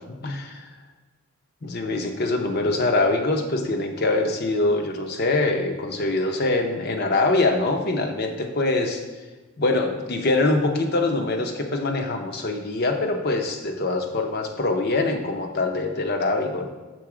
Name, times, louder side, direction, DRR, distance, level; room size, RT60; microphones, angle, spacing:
voice 1, 0.2-0.7 1.6-9.0 9.6-16.7, left 2 dB, 45° left, 4 dB, 0.7 m, -24 dB
6.2 x 4.0 x 4.9 m, 1.2 s
head